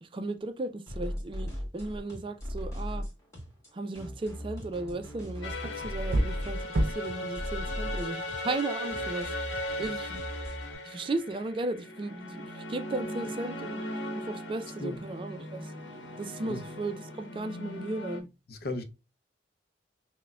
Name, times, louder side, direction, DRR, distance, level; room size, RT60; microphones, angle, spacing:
voice 1, 0.0-3.1 3.7-9.3 9.8-10.2 10.8-13.8 14.1-15.7 16.2-18.3, right 2 dB, 30° right, 0.3 m, -36 dB
sound 1, 0.9-10.8, equal, 15° left, 1.6 m, -38 dB
sound 2, 4.2-9.1, right 1 dB, 90° right, 0.6 m, -34 dB
sound 3, 5.4-18.2, left 1 dB, 85° left, 0.9 m, -38 dB
voice 2, 18.5-18.8, left 2 dB, 55° left, 0.6 m, -35 dB
5.7 x 2.1 x 2.2 m
head